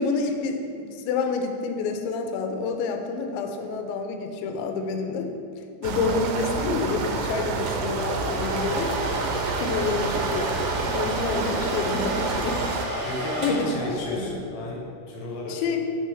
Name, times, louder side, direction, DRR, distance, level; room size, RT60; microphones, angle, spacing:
voice 1, 0.0-5.3 5.8-8.9 9.6-12.6 13.4-13.7 14.1-14.3 15.5-15.8, left 4 dB, 90° left, 4 dB, 3.0 m, -28 dB
sound 1, 5.8-12.9, right 4 dB, 85° right, 2.8 m, -28 dB
Domestic sounds home sounds, 7.6-14.3, right 1 dB, 55° right, 1.6 m, -32 dB
voice 2, 13.0-15.6, left 2 dB, 70° left, -2 dB, 2.7 m, -33 dB
7.4 x 6.0 x 3.4 m, 2.4 s
omnidirectional pair, 5.1 m